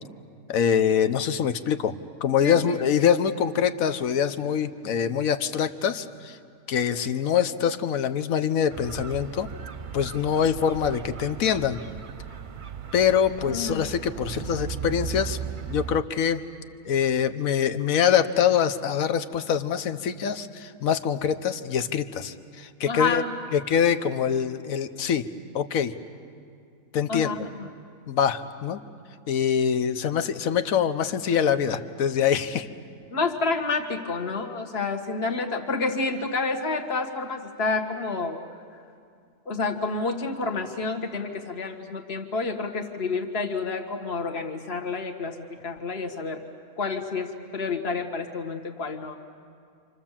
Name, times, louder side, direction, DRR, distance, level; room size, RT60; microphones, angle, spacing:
voice 1, 0.5-1.9 2.2-6.4 6.7-9.5 9.9-11.8 12.9-15.4 15.7-16.4 16.8-23.2 23.5-25.3 25.5-25.9 26.9-27.5 28.1-28.8 29.3-32.7, left 8 dB, 75° left, 11 dB, 1.3 m, -24 dB
voice 2, 2.4-2.7 13.5-13.8 22.9-23.3 27.1-27.7 33.1-38.4 39.4-46.4 46.8-49.2, left 4 dB, 45° left, 2 dB, 1.9 m, -29 dB
sound 1, 8.7-16.0, right 7 dB, 40° right, 0.8 m, -37 dB
29.0 x 26.5 x 7.4 m, 2.3 s
omnidirectional pair, 1.5 m